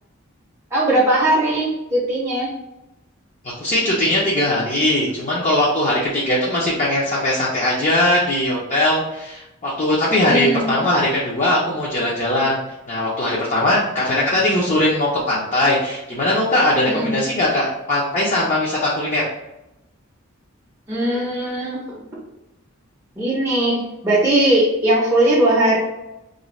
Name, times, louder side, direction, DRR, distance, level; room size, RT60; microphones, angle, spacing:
voice 1, 0.7-2.5 10.3-10.7 16.9-17.1 20.9-21.8 23.2-25.8, right 1 dB, 15° right, -6 dB, 0.5 m, -19 dB
voice 2, 3.6-12.6 12.9-19.2, left 1 dB, 35° left, -5 dB, 0.5 m, -20 dB
2.5 x 2.1 x 3.0 m, 0.93 s
head